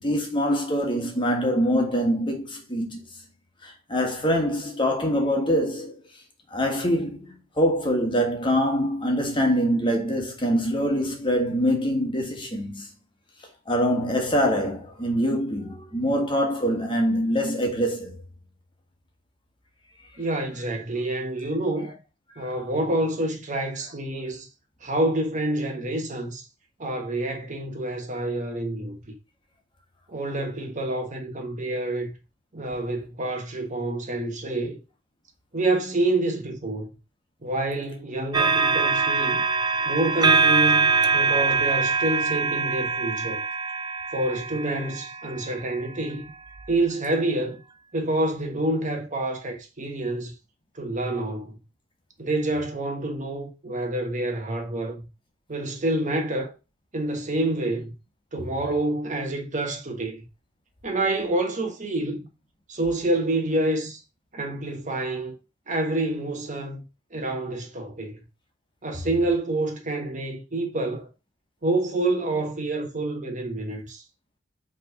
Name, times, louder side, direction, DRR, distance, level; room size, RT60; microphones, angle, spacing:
voice 1, 0.0-3.0 3.6-5.9 6.5-12.9 13.7-18.2, equal, 25° left, 1.6 m, -24 dB
voice 2, 20.2-21.9 22.4-24.5 24.8-26.5 26.8-29.1 30.1-32.2 32.5-34.8 35.5-36.9 37.4-39.4 39.8-43.4 44.1-46.2 46.7-47.6 47.9-50.3 50.7-51.6 52.2-55.1 55.5-56.5 56.9-57.9 58.3-60.3 60.8-62.3 62.7-64.0 64.3-65.3 65.7-66.9 67.1-68.2 68.8-71.1 71.6-74.0, right 2 dB, 40° right, 1.3 m, -27 dB
sound 1, 38.3-45.8 46.6-46.7, right 4 dB, 20° right, 0.6 m, -23 dB
5.6 x 3.6 x 5.0 m
head